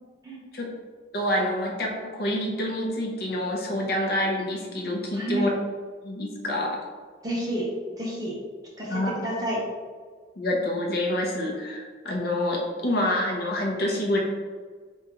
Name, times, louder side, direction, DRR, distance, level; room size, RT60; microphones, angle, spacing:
voice 1, 1.1-5.5 6.0-6.8 8.9-9.1 10.4-14.2, left 1 dB, 55° left, -1 dB, 0.7 m, -27 dB
voice 2, 7.2-7.6 8.0-8.3 8.8-9.6, equal, 20° right, -5 dB, 1.0 m, -29 dB
4.5 x 3.5 x 3.0 m, 1.5 s
head